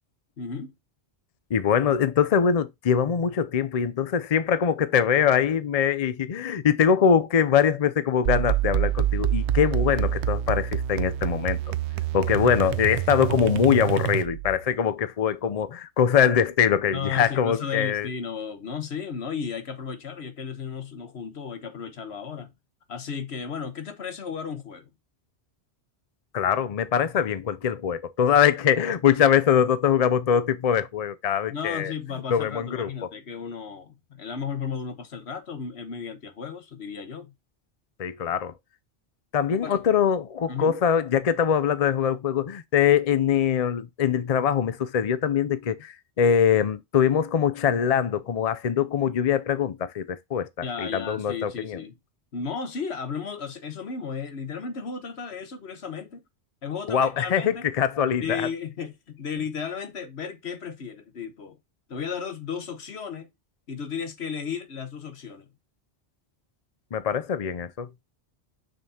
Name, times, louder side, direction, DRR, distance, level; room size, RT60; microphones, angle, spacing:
voice 1, 0.4-0.7 16.9-22.5 22.9-24.9 31.5-37.3 39.6-39.8 40.5-40.8 50.6-51.9 52.3-56.2 56.6-57.7 58.2-61.6 61.9-63.3 63.7-65.5, left 6 dB, 70° left, 1.4 m, -34 dB
voice 2, 1.5-11.7 12.1-18.1 26.3-31.9 32.3-33.1 38.0-38.5 39.3-50.5 50.8-51.8 56.9-58.5 66.9-67.9, left 8 dB, 45° left, 0.5 m, -23 dB
sound 1, 8.2-14.6, right 11 dB, 80° right, 0.9 m, -26 dB
6.6 x 6.5 x 2.8 m
omnidirectional pair, 1.2 m